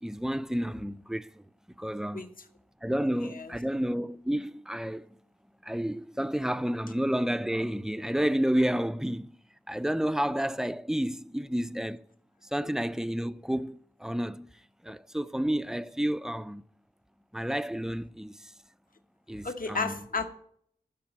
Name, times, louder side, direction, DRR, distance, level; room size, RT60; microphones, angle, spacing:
voice 1, 0.0-1.4 1.8-2.3 2.8-5.1 5.6-9.4 9.7-12.0 12.5-14.5 14.8-16.6 17.3-18.5 19.3-20.0, equal, 5° right, 0.5 m, -30 dB
voice 2, 3.2-3.5 19.4-20.2, left 4 dB, 55° left, 1.2 m, -32 dB
12.0 x 5.0 x 8.8 m
cardioid pair, 45°, 17 cm